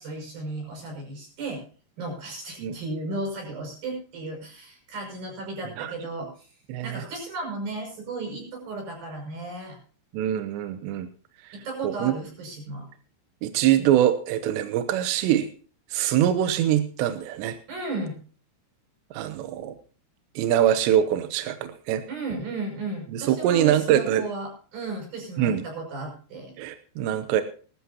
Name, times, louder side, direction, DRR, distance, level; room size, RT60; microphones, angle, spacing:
voice 1, 0.0-1.6 2.0-6.5 6.8-9.8 11.5-12.9 17.7-18.2 22.1-26.5, right 2 dB, 55° right, 1 dB, 7.7 m, -34 dB
voice 2, 6.7-7.0 10.1-11.1 11.8-12.1 13.4-15.5 15.9-17.6 19.1-19.7 20.4-22.0 23.1-24.2 25.4-25.6 26.6-27.4, right 11 dB, 80° right, 10 dB, 2.9 m, -23 dB
20.0 x 13.0 x 2.8 m, 0.41 s
omnidirectional pair, 5.1 m